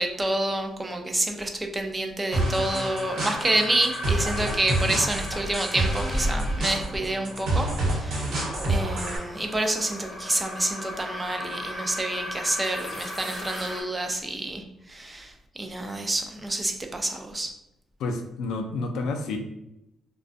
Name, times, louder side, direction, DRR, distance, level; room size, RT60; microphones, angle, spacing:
voice 1, 0.0-7.7 7.9-8.4 8.7-14.6 14.9-17.5, right 1 dB, 20° right, 4 dB, 0.4 m, -28 dB
sound 1, 2.3-13.8, equal, 30° left, 0.6 m, -35 dB
sound 2, 2.3-9.2, right 1 dB, 80° right, 0.9 m, -28 dB
voice 2, 18.0-19.4, left 3 dB, 85° left, 4 dB, 0.3 m, -30 dB
2.5 x 2.2 x 2.4 m, 0.88 s
cardioid pair, 90°, 0 cm